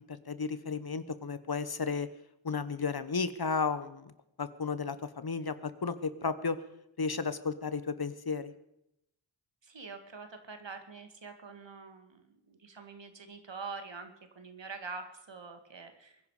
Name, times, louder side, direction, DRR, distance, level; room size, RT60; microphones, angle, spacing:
voice 1, 0.1-2.1 2.4-4.1 4.4-6.6 7.0-8.5, left 5 dB, 50° left, 13 dB, 1.1 m, -33 dB
voice 2, 9.6-16.2, right 4 dB, 65° right, 7 dB, 2.2 m, -45 dB
23.5 x 10.5 x 5.0 m, 0.82 s
wide cardioid pair, 50°, 47 cm